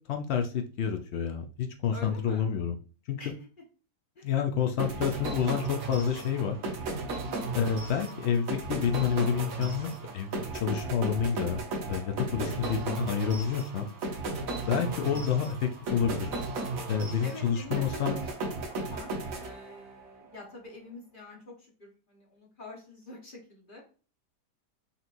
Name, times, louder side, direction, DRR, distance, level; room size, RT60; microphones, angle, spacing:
voice 1, 0.1-2.8 3.1-3.2 4.2-6.6 7.5-11.6 11.9-13.9 14.7-16.4 16.8-18.2, left 7 dB, 85° left, 5 dB, 0.5 m, -29 dB
voice 2, 1.9-2.5 3.2-3.3 4.1-4.3 7.3-7.6 12.4-12.8 15.0-15.2 17.2-18.3 18.9-23.8, left 2 dB, 35° left, -3 dB, 1.3 m, -46 dB
sound 1, 4.8-20.1, right 2 dB, 60° right, 1.3 m, -35 dB
5.5 x 2.9 x 2.5 m, 0.36 s
omnidirectional pair, 1.8 m